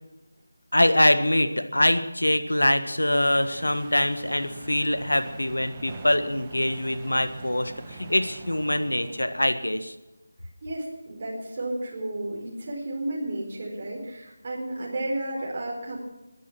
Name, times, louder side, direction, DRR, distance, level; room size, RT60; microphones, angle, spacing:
voice 1, 0.7-9.9, left 1 dB, 85° left, 10 dB, 1.7 m, -24 dB
sound 1, 3.1-9.8, right 3 dB, 20° right, 1.6 m, -44 dB
voice 2, 10.6-16.0, right 1 dB, 40° right, -2 dB, 4.4 m, -32 dB
21.0 x 11.0 x 6.1 m, 1.0 s
figure-of-eight pair, 165°, 0 cm